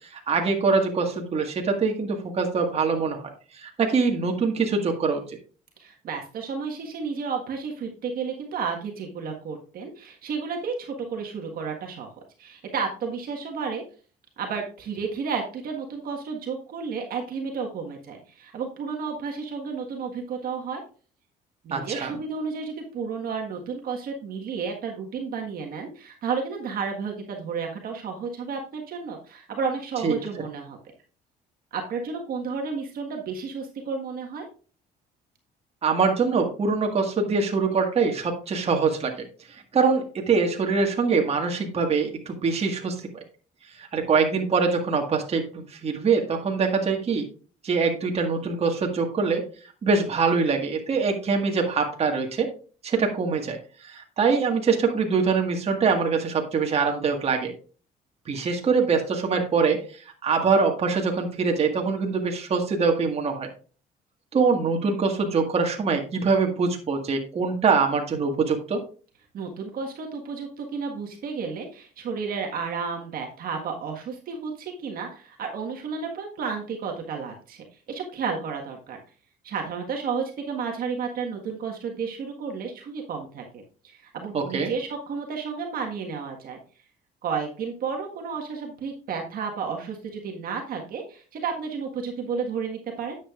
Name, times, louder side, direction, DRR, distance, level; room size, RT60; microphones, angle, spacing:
voice 1, 0.1-3.2 3.6-5.2 21.7-22.1 30.0-30.1 35.8-39.1 39.7-43.0 43.8-47.3 47.6-49.4 49.8-52.5 52.8-53.6 53.8-57.5 58.3-59.8 60.2-63.5 64.3-68.8 84.3-84.7, right 4 dB, 40° right, 2 dB, 1.7 m, -23 dB
voice 2, 5.8-12.1 12.4-13.8 14.4-20.8 21.6-30.8 31.7-34.4 69.3-79.0 79.4-86.6 87.2-93.1, right 5 dB, 60° right, 1 dB, 1.6 m, -32 dB
10.0 x 7.6 x 2.4 m, 0.38 s
cardioid pair, 110°, 17 cm